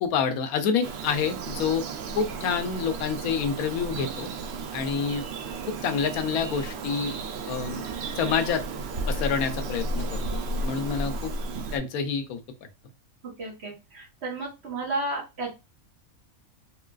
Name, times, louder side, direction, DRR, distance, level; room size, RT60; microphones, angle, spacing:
voice 1, 0.0-1.8 2.2-4.3 4.7-5.3 5.7-7.1 7.5-7.9 8.2-8.6 9.1-10.2 10.6-11.3 11.7-12.4, left 6 dB, 75° left, 7 dB, 1.0 m, -27 dB
Bird vocalization bird call bird song, 0.8-11.8, right 3 dB, 70° right, 0.6 m, -33 dB
voice 2, 13.4-15.5, right 2 dB, 50° right, -2 dB, 1.2 m, -32 dB
3.7 x 2.3 x 2.3 m, 0.25 s
omnidirectional pair, 1.6 m